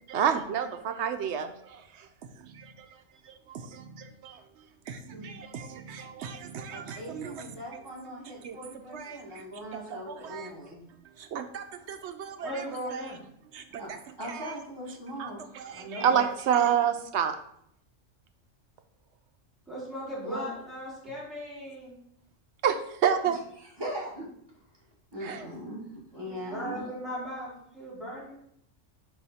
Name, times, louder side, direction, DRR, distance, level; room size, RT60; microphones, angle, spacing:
voice 1, 0.1-2.1 2.4-4.4 4.9-7.6 8.4-8.6 8.9-9.5 9.7-10.5 11.2-13.1 13.5-14.0 14.2-14.6 15.2-17.4 22.6-23.4 25.2-25.5, right 8 dB, 70° right, 8 dB, 0.8 m, -31 dB
voice 2, 5.1-5.6 12.4-13.2 15.7-16.1 19.7-22.0 26.1-28.3, equal, ahead, -8 dB, 2.5 m, -38 dB
voice 3, 6.7-10.8 13.8-15.4 16.1-16.2 20.2-20.5 23.8-24.3 25.1-25.8 26.1-26.8, equal, 20° right, -5 dB, 1.7 m, -40 dB
4.8 x 4.8 x 4.2 m, 0.72 s
omnidirectional pair, 1.3 m